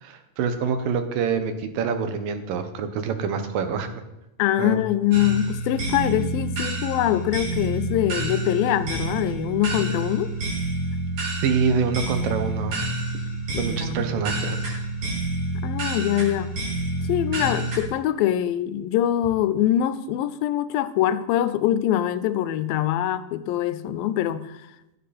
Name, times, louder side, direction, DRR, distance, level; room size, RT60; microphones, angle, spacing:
voice 1, 0.0-4.0 4.6-4.8 11.4-12.8 13.6-14.8, right 6 dB, 75° right, 2.8 m, -26 dB
voice 2, 4.4-10.3 13.5-14.0 15.6-16.5 17.1-24.6, left 12 dB, 80° left, 2.5 m, -23 dB
sound 1, 5.1-17.8, right 2 dB, 55° right, 5.6 m, -28 dB
16.0 x 11.0 x 4.3 m
omnidirectional pair, 4.1 m